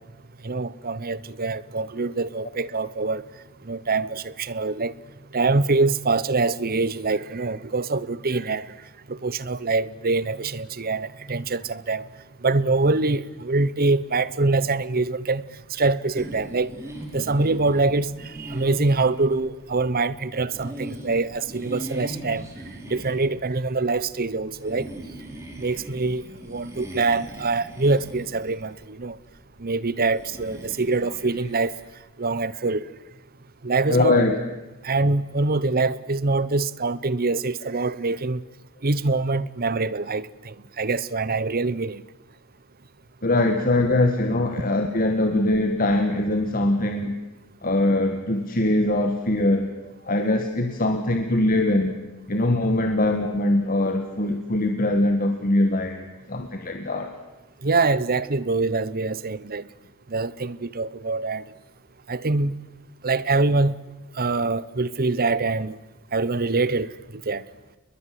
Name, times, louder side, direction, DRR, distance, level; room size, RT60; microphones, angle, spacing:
voice 1, 0.4-3.2 3.6-4.9 5.3-8.7 9.1-12.1 12.4-16.7 17.1-22.5 22.9-24.9 25.6-29.2 29.6-31.7 32.2-32.9 33.6-34.2 34.8-38.4 38.8-42.0 57.6-59.7 60.1-61.4 62.1-62.6 63.0-63.7 64.2-65.8 66.1-67.5, right 3 dB, 40° right, 0.9 m, -24 dB
sound 1, 16.1-31.9, right 1 dB, 15° right, 4.2 m, -40 dB
voice 2, 33.9-34.4 43.2-47.2 47.6-49.7 50.0-52.0 52.3-57.1, left 1 dB, 40° left, 1.8 m, -22 dB
29.5 x 21.5 x 7.8 m
head